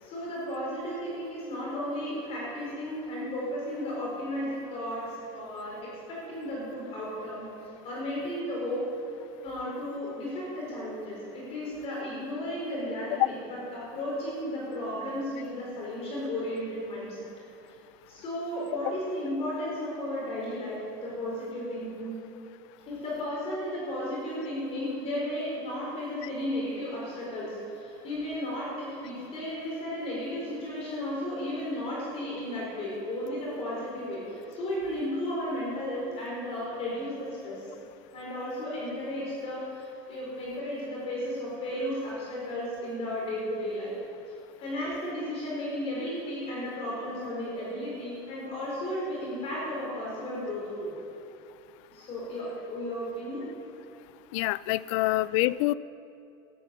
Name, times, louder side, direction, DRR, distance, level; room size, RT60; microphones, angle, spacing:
voice 1, 0.0-7.5 7.8-8.9 9.4-17.2 18.1-22.2 22.9-37.7 38.1-43.9 44.6-50.9 51.9-53.4 55.0-55.4, left 1 dB, 40° left, -5 dB, 4.3 m, -34 dB
voice 2, 54.3-55.7, left 18 dB, 75° left, 19 dB, 0.4 m, -26 dB
13.0 x 10.5 x 6.9 m, 2.6 s
cardioid pair, 150°, 16 cm